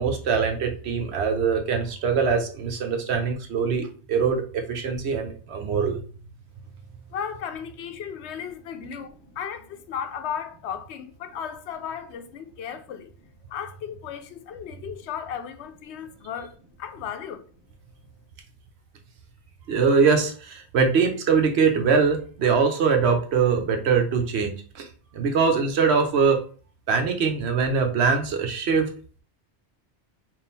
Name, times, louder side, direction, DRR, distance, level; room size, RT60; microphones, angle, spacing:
voice 1, 0.0-6.0 19.7-24.9 25.1-26.4 26.9-28.9, right 5 dB, 70° right, 1.0 m, -22 dB
voice 2, 7.1-13.1 13.5-17.4, left 8 dB, 75° left, 0.8 m, -35 dB
3.8 x 2.4 x 3.9 m
omnidirectional pair, 1.2 m